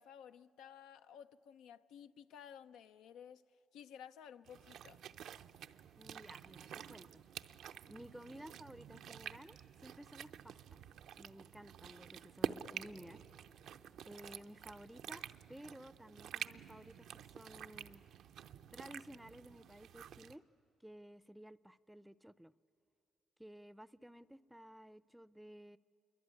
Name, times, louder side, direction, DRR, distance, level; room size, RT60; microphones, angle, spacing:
voice 1, 0.0-3.4 3.7-5.0, left 8 dB, 90° left, 0.6 m, -55 dB
sound 1, 4.5-20.4, right 9 dB, 75° right, 0.6 m, -48 dB
voice 2, 6.0-7.2 7.9-10.9 11.2-13.2 14.1-18.0 18.7-20.4 20.8-22.5 23.4-25.8, equal, 5° right, 0.5 m, -55 dB
27.0 x 23.0 x 9.6 m
cardioid pair, 90°, 0 cm